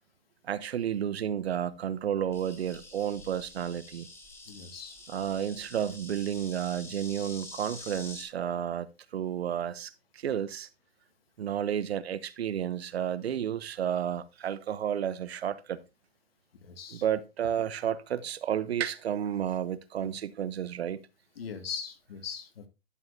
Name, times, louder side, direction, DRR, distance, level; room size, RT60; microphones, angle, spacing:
voice 1, 0.4-4.1 5.1-10.7 11.4-15.8 16.9-21.0, right 9 dB, 80° right, 0.9 m, -32 dB
Insect, 2.3-8.2, left 2 dB, 10° left, 1.6 m, -47 dB
voice 2, 4.5-5.0 16.6-17.0 20.0-20.1 21.4-22.7, left 6 dB, 70° left, 2.0 m, -40 dB
11.0 x 7.0 x 2.7 m
hypercardioid pair, 155°, 31 cm